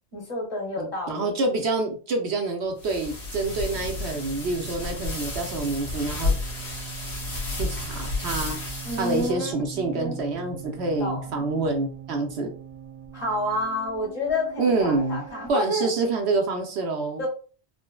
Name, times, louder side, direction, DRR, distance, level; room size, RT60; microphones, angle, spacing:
voice 1, 0.1-1.3 8.8-10.2 11.0-11.5 13.1-15.9 17.2-17.3, left 1 dB, 30° left, -5 dB, 1.6 m, -30 dB
voice 2, 0.8-6.3 7.6-8.6 8.9-12.5 14.6-17.2, right 3 dB, 80° right, 3 dB, 1.0 m, -27 dB
sound 1, 2.7-15.5, right 10 dB, 25° right, 0.9 m, -42 dB
sound 2, 2.8-9.3, left 3 dB, 80° left, 1.2 m, -31 dB
3.9 x 2.1 x 2.2 m, 0.38 s
omnidirectional pair, 1.1 m